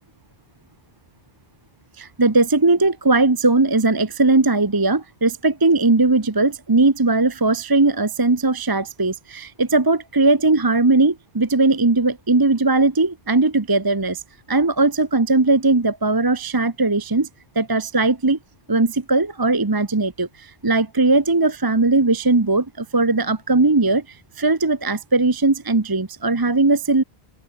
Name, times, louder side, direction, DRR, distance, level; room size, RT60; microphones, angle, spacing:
voice 1, 2.0-14.2 14.5-17.3 17.5-18.4 18.7-27.0, right 3 dB, 20° right, 0.9 m, -19 dB
open air
omnidirectional pair, 1.0 m